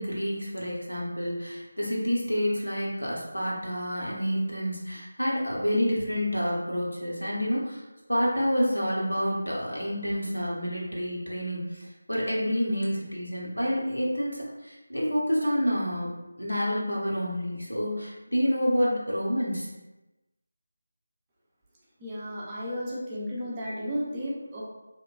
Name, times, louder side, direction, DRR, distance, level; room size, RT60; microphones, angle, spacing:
voice 1, 0.0-7.8 8.1-16.1 16.4-19.7, equal, 90° left, -4 dB, 0.8 m, -28 dB
voice 2, 22.0-24.6, equal, 15° right, -6 dB, 0.4 m, -33 dB
2.9 x 2.1 x 2.4 m, 1.0 s
figure-of-eight pair, 160°, 0 cm